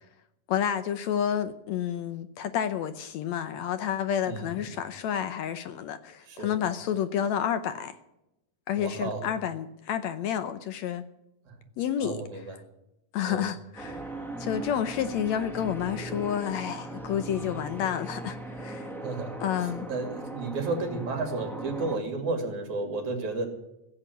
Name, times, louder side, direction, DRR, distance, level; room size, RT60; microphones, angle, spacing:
voice 1, 0.5-8.0 8.7-11.0 11.8-12.2 13.1-14.1 14.4-18.9 19.4-19.9, left 9 dB, 75° left, 11 dB, 1.8 m, -30 dB
voice 2, 4.2-4.8 6.3-6.6 8.7-9.2 11.5-11.6 12.0-12.6 13.3-13.4 19.0-19.4 19.9-23.5, right 3 dB, 65° right, 4 dB, 4.0 m, -32 dB
sound 1, 13.7-22.0, right 2 dB, ahead, 0.7 m, -39 dB
16.0 x 8.1 x 9.4 m, 0.88 s
omnidirectional pair, 3.6 m